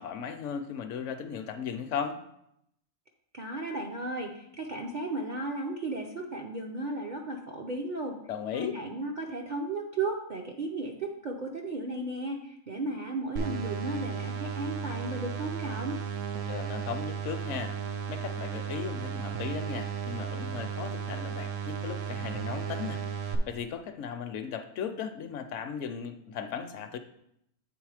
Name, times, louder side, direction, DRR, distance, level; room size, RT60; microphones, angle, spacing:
voice 1, 0.0-2.2 8.3-8.8 16.4-17.8 18.1-27.0, left 7 dB, 70° left, 8 dB, 0.8 m, -37 dB
voice 2, 3.3-8.2 8.5-16.0, right 2 dB, 50° right, 0 dB, 0.5 m, -35 dB
sound 1, 13.4-23.4, right 7 dB, 70° right, 1.0 m, -35 dB
7.9 x 3.6 x 4.8 m, 0.76 s
omnidirectional pair, 1.4 m